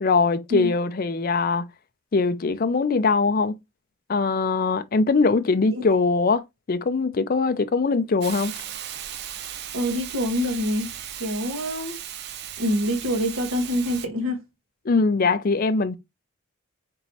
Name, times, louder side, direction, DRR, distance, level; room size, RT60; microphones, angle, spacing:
voice 1, 0.0-1.6 2.1-3.5 4.1-6.4 6.7-8.5 14.9-15.9, left 4 dB, 40° left, 0.4 m, -22 dB
voice 2, 5.5-5.8 9.7-10.9 11.2-12.0 12.6-14.4, equal, 70° right, 1.3 m, -26 dB
Hiss, 8.2-14.1, right 10 dB, 50° right, 0.4 m, -36 dB
4.5 x 3.0 x 2.7 m
head